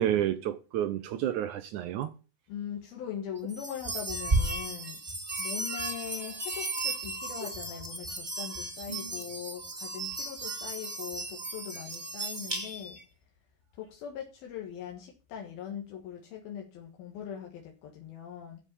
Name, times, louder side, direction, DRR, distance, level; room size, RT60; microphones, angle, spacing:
voice 1, 0.0-2.1, right 11 dB, 75° right, 1.8 m, -30 dB
voice 2, 2.5-5.0 5.4-13.0 13.7-18.6, left 9 dB, 80° left, 3.4 m, -41 dB
sound 1, 3.5-13.0, right 2 dB, 25° right, 1.1 m, -34 dB
13.0 x 5.1 x 8.3 m
omnidirectional pair, 4.3 m